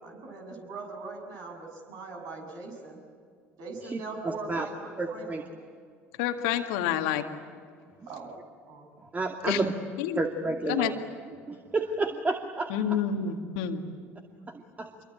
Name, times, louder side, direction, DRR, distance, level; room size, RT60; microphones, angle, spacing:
voice 1, 0.0-3.0 3.6-5.5 8.1-8.3 8.7-8.9 14.8-14.9, right 3 dB, 60° right, 2 dB, 7.2 m, -41 dB
voice 2, 3.8-4.7 5.0-5.4 9.0-9.7 10.1-10.9 11.5-12.7 14.5-14.9, right 3 dB, 20° right, 4 dB, 2.4 m, -31 dB
voice 3, 6.2-7.3 9.5-9.6 10.0-10.2 10.7-10.9 12.7-13.8, left 9 dB, 70° left, 5 dB, 2.0 m, -28 dB
27.0 x 23.5 x 9.0 m, 2.2 s
hypercardioid pair, 65°, 7 cm